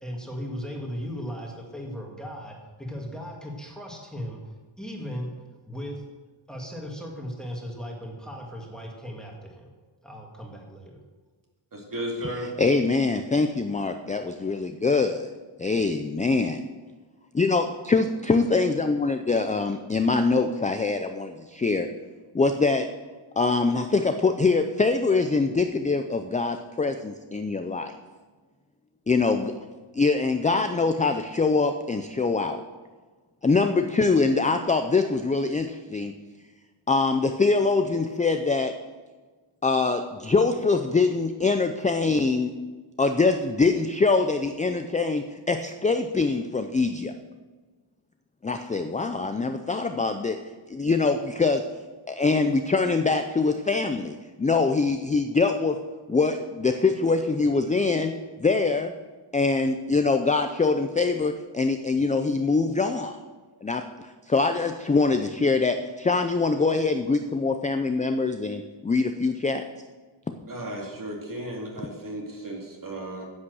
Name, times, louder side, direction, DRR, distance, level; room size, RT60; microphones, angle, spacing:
voice 1, 0.0-4.4 4.8-5.3 5.6-6.0 6.5-9.7 10.0-11.0, equal, ahead, -1 dB, 1.9 m, -37 dB
voice 2, 11.7-12.5 70.5-73.3, right 1 dB, 40° right, -1 dB, 2.5 m, -34 dB
voice 3, 12.6-15.2 15.6-16.6 17.4-21.9 22.3-22.9 23.4-27.9 29.1-29.5 29.9-32.6 33.4-36.1 36.9-38.7 39.6-42.5 43.0-47.1 48.4-50.4 50.7-51.6 52.1-55.8 56.1-58.9 59.3-63.2 63.6-63.9 64.3-69.6 70.3-70.4, left 3 dB, 15° left, 7 dB, 0.4 m, -24 dB
9.9 x 8.6 x 6.3 m, 1.3 s
wide cardioid pair, 150°, 50 cm